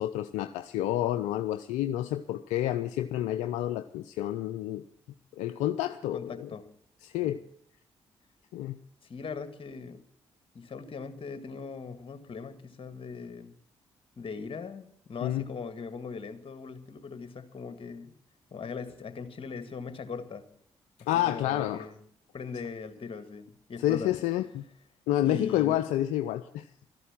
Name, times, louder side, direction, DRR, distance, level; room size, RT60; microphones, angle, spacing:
voice 1, 0.0-4.8 5.4-6.5 7.0-7.4 8.5-8.8 15.2-15.5 21.1-21.9 23.8-24.7 25.1-26.7, left 13 dB, 80° left, 11 dB, 0.5 m, -29 dB
voice 2, 6.1-6.7 7.2-7.3 9.0-10.0 10.5-13.5 14.2-18.2 18.5-20.5 21.2-22.0 22.3-24.1 25.2-25.8, left 5 dB, 50° left, 10 dB, 2.0 m, -40 dB
14.0 x 11.0 x 7.3 m, 0.67 s
hypercardioid pair, 45°, 12 cm